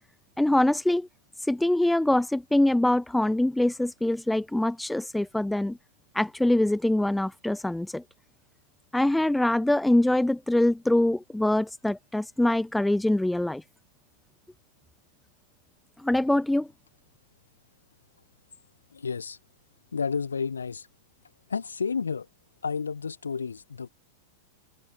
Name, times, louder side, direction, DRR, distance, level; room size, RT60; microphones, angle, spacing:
voice 1, 0.4-1.1 1.5-5.8 6.1-8.0 8.9-13.6 16.0-16.7, left 1 dB, 5° left, 0.9 m, -24 dB
voice 2, 18.9-19.4 19.9-20.9 21.5-22.3 22.6-23.9, left 5 dB, 75° left, 4.5 m, -31 dB
figure-of-eight pair, 90°, 0 cm